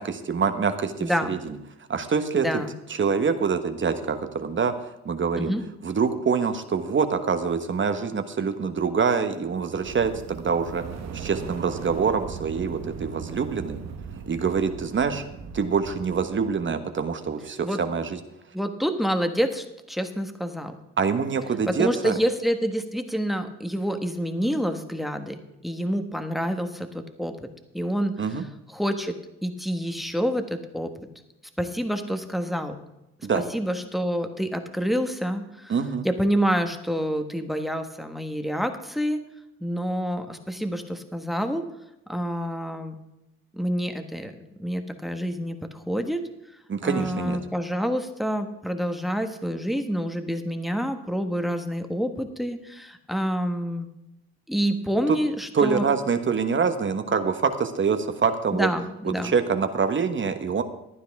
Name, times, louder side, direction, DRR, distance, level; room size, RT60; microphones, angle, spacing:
voice 1, 0.0-1.5 1.9-2.5 3.0-5.5 5.8-10.8 11.1-13.8 14.3-15.2 15.5-18.2 21.0-22.1 28.2-28.4 33.2-33.4 35.7-36.1 46.7-47.4 55.1-55.2 55.5-58.7 59.0-60.6, right 5 dB, 40° right, 8 dB, 1.3 m, -25 dB
voice 2, 1.0-1.3 2.3-2.7 5.4-5.6 17.6-17.8 18.5-20.8 21.7-27.5 27.7-28.1 28.7-30.9 31.6-32.8 33.3-35.7 36.0-39.2 39.6-41.7 42.1-43.0 43.5-46.3 46.8-53.9 54.5-55.9 58.5-59.3, equal, ahead, 7 dB, 1.4 m, -27 dB
sound 1, 9.5-16.5, right 6 dB, 60° right, 1.3 m, -38 dB
15.5 x 11.0 x 3.6 m, 0.89 s
cardioid pair, 90°, 30 cm